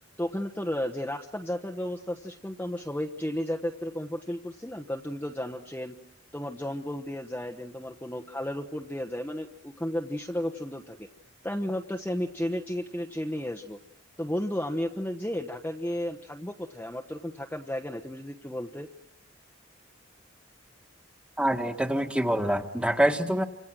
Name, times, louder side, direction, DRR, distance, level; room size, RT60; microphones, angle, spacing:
voice 1, 0.2-6.0 6.3-11.1 11.4-13.8 14.2-18.9, left 1 dB, 10° left, 2 dB, 1.2 m, -33 dB
voice 2, 21.4-23.4, right 1 dB, 5° right, 6 dB, 1.8 m, -25 dB
29.0 x 26.0 x 6.2 m, 0.78 s
head